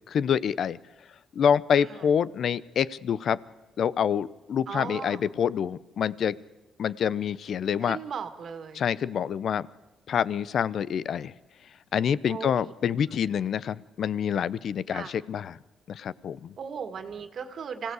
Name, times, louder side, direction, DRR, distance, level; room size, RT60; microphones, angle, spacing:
voice 1, 0.1-0.8 1.4-3.4 3.8-6.4 6.8-8.0 8.7-9.7 10.1-11.3 11.9-15.6 15.9-16.5, left 8 dB, 60° left, 19 dB, 0.7 m, -27 dB
voice 2, 1.7-2.1 4.7-5.3 7.8-8.9 12.3-12.7 14.9-15.1 16.6-17.9, right 6 dB, 55° right, 8 dB, 2.1 m, -37 dB
25.5 x 16.5 x 8.2 m, 1.1 s
cardioid pair, 90°, 0 cm